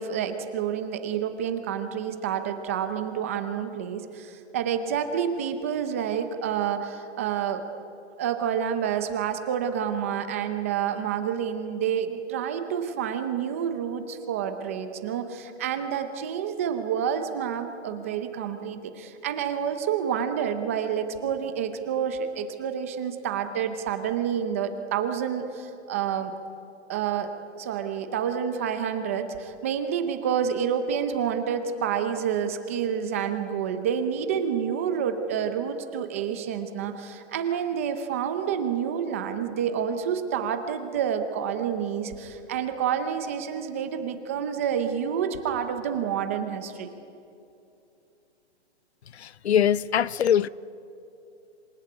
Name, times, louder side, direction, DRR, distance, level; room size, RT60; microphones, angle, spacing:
voice 1, 0.0-7.6 8.2-26.3 26.9-46.9, right 8 dB, 10° right, 0.6 m, -28 dB
voice 2, 49.1-50.5, left 9 dB, 65° left, 0.7 m, -22 dB
26.5 x 18.0 x 9.8 m
hypercardioid pair, 170°, 35 cm